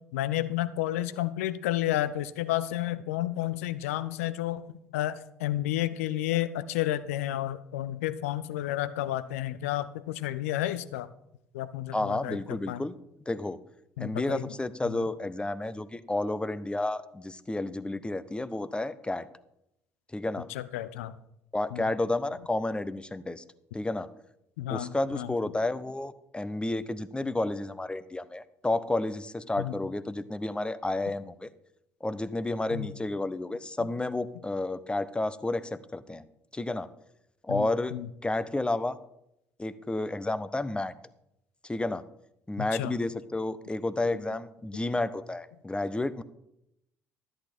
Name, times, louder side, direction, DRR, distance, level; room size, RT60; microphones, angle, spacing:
voice 1, 0.1-11.1 11.5-12.8 14.0-14.5 14.8-15.0 20.5-21.2 21.7-21.8 24.6-25.3 29.6-29.7 32.7-32.9 37.5-38.1 42.6-42.9, left 14 dB, 75° left, 15 dB, 0.6 m, -31 dB
voice 2, 11.9-12.9 13.3-13.6 14.0-19.3 20.1-20.5 21.5-23.4 23.7-24.1 24.7-31.5 32.0-36.2 36.5-36.9 37.4-37.9 38.2-39.0 39.6-40.9 41.6-42.0 42.5-46.2, left 2 dB, 15° left, 16 dB, 0.7 m, -31 dB
13.0 x 8.8 x 4.5 m, 0.81 s
figure-of-eight pair, 50°, 8 cm